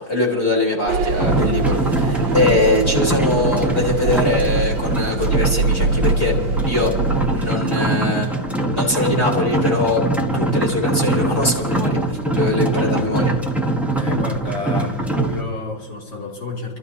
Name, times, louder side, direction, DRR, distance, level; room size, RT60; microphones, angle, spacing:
voice 1, 0.0-6.3 6.7-6.9 7.3-10.0 10.3-13.3, left 2 dB, 30° left, -2 dB, 4.0 m, -22 dB
sound 1, 0.9-7.5, right 4 dB, 85° right, 1.8 m, -23 dB
sound 2, 1.2-15.4, right 2 dB, ahead, 1.0 m, -22 dB
voice 2, 13.9-16.8, left 3 dB, 55° left, -3 dB, 3.9 m, -30 dB
30.0 x 13.5 x 2.8 m, 1.4 s
omnidirectional pair, 2.2 m